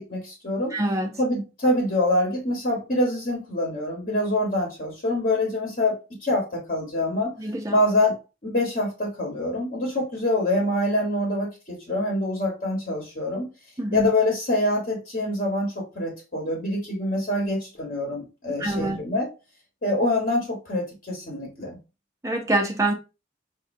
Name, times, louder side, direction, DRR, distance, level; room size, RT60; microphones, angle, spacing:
voice 1, 0.0-0.7 1.2-7.3 7.7-8.2 8.4-13.5 13.9-19.3 19.8-21.8, left 1 dB, 45° left, 1.1 m, -25 dB
voice 2, 0.7-1.2 7.4-7.8 13.8-14.1 18.6-19.0 22.2-22.9, right 1 dB, 15° right, 0.5 m, -25 dB
5.0 x 2.6 x 2.5 m
head